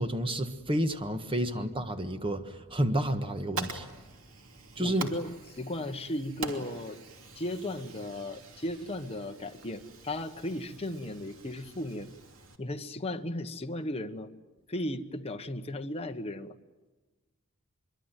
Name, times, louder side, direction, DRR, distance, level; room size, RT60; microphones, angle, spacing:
voice 1, 0.0-3.8 4.8-5.1, right 1 dB, 25° right, 1.5 m, -30 dB
Fire, 3.1-12.6, right 4 dB, 65° right, 3.0 m, -44 dB
voice 2, 4.8-7.0 7.4-12.1 12.6-14.3 14.7-16.6, left 1 dB, 25° left, 1.2 m, -36 dB
25.5 x 23.5 x 9.1 m
head